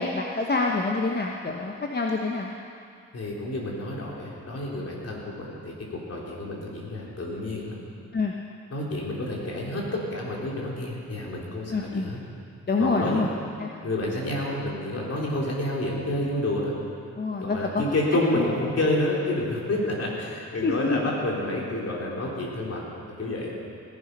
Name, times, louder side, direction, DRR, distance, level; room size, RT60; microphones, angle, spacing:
voice 1, 0.0-2.5 8.1-8.3 11.7-12.1 12.7-13.3 13.6-13.7 17.2-17.8 18.3-18.6 20.6-21.0, left 3 dB, 35° left, 0 dB, 1.1 m, -26 dB
voice 2, 3.1-7.8 8.7-12.2 12.8-13.3 13.8-16.7 17.4-22.8 23.2-23.5, left 1 dB, 55° left, -3 dB, 3.8 m, -29 dB
17.0 x 11.0 x 5.5 m, 2.4 s
cardioid pair, 75°, 30 cm